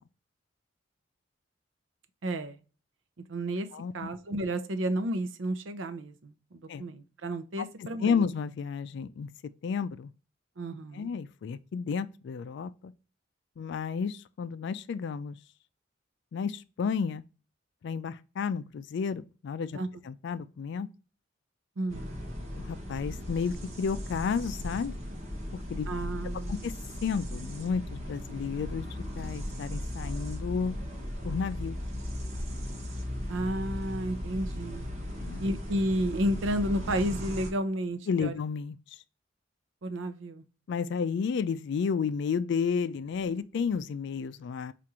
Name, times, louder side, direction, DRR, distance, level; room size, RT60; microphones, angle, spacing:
voice 1, 2.2-2.6 3.3-3.7 3.9-8.3 10.6-11.1 19.7-19.9 21.8-22.2 25.9-26.7 33.3-34.9 35.4-38.3 39.8-40.4, right 1 dB, 75° right, 0.6 m, -32 dB
voice 2, 3.7-4.1 6.7-6.8 8.0-9.3 9.6-10.1 10.9-12.9 13.6-15.4 16.3-17.2 17.8-19.8 20.0-20.9 22.6-24.9 25.5-25.9 26.5-26.7 27.0-28.9 29.1-30.8 31.2-31.8 35.2-35.4 38.1-38.8 40.7-44.7, left 6 dB, 60° left, 0.3 m, -32 dB
sound 1, 21.9-37.5, equal, 35° right, 0.9 m, -37 dB
4.6 x 2.5 x 2.8 m
head